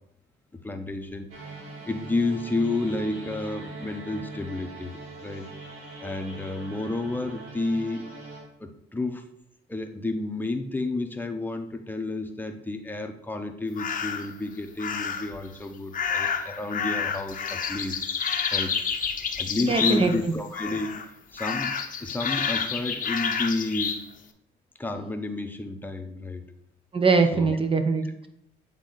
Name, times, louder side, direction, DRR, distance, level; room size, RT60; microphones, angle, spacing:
voice 1, 0.5-1.3 1.9-5.5 6.0-8.1 8.6-9.3 9.7-18.0 18.5-18.8 19.4-21.7 22.0-24.1 24.8-26.5 27.3-27.6, left 2 dB, 10° left, 5 dB, 0.8 m, -31 dB
sound 1, 1.3-8.4, right 2 dB, 90° right, 1.8 m, -41 dB
sound 2, 13.8-14.3 14.8-15.4 15.9-20.3 20.5-21.1 21.4-24.0, left 6 dB, 45° left, 0.7 m, -29 dB
voice 2, 19.6-20.3 26.9-28.3, right 4 dB, 25° right, 7 dB, 0.7 m, -23 dB
8.2 x 3.7 x 4.0 m, 0.77 s
cardioid pair, 90°, 20 cm